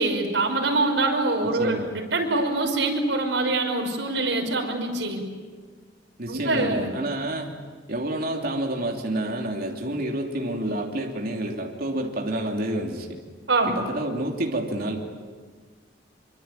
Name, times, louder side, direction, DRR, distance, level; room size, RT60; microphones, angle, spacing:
voice 1, 0.0-5.2 6.3-6.9 13.5-13.8, right 2 dB, 85° right, 2 dB, 5.6 m, -24 dB
voice 2, 1.4-1.9 6.2-7.6 7.9-13.2 13.7-15.0, right 1 dB, 55° right, 1 dB, 3.0 m, -29 dB
26.0 x 24.5 x 9.0 m, 1.5 s
head